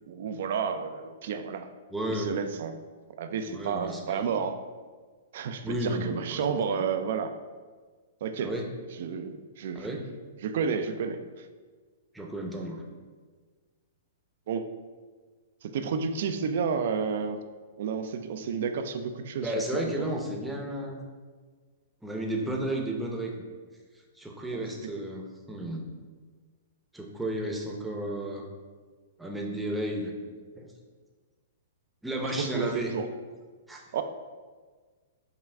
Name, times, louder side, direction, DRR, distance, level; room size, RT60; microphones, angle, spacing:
voice 1, 0.1-1.7 2.0-2.8 3.2-4.6 5.3-7.3 8.2-8.5 9.0-10.0 10.4-11.5 14.5-14.6 15.6-17.4 17.8-19.5 20.0-20.1 24.5-24.7 32.4-33.1 33.9-34.0, right 6 dB, 65° right, 9 dB, 0.3 m, -31 dB
voice 2, 1.9-2.4 3.5-4.2 5.6-6.4 6.7-6.8 8.4-8.7 9.7-10.1 12.1-12.8 19.4-21.0 22.0-23.3 24.2-25.9 26.9-28.4 29.2-30.1 30.5-30.7 32.0-32.9 33.7-33.8, right 1 dB, 5° right, 0 dB, 0.7 m, -33 dB
5.5 x 2.3 x 3.4 m, 1.5 s
hypercardioid pair, 125°, 0 cm